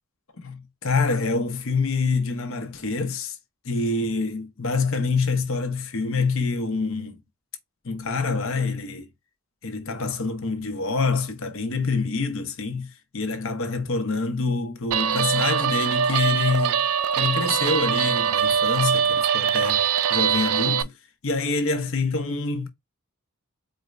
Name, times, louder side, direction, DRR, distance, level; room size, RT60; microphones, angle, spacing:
voice 1, 0.4-3.4 3.6-7.2 7.8-9.1 9.6-16.9 17.2-20.9 21.2-22.7, left 4 dB, 60° left, 0.9 m, -26 dB
Guitar, 14.9-20.8, right 8 dB, 80° right, 0.4 m, -22 dB
4.4 x 2.6 x 3.2 m
head